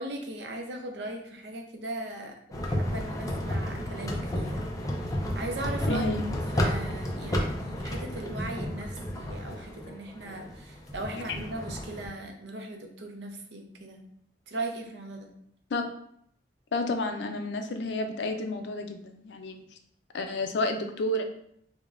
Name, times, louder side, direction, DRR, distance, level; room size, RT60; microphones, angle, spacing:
voice 1, 0.0-4.7 5.0-6.0 6.5-14.1 14.5-15.3, right 2 dB, 75° right, 4 dB, 0.6 m, -38 dB
sound 1, 2.5-12.1, equal, 20° left, 0.4 m, -32 dB
voice 2, 5.9-6.2 15.7-15.8 16.7-19.6 20.1-21.2, left 2 dB, 75° left, 6 dB, 0.4 m, -30 dB
5.0 x 2.2 x 2.4 m, 0.69 s
head